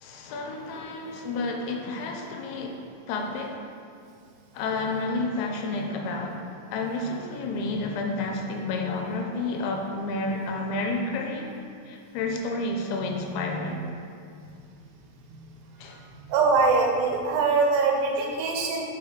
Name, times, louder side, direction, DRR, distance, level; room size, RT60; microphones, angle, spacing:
voice 1, 0.0-2.8 3.1-3.6 4.5-6.4 6.7-11.5 11.9-13.9 15.8-16.0, left 2 dB, 90° left, 2 dB, 2.6 m, -30 dB
voice 2, 16.3-18.8, right 4 dB, 85° right, 0 dB, 2.9 m, -22 dB
5.6 x 4.7 x 5.0 m, 2.4 s
omnidirectional pair, 4.6 m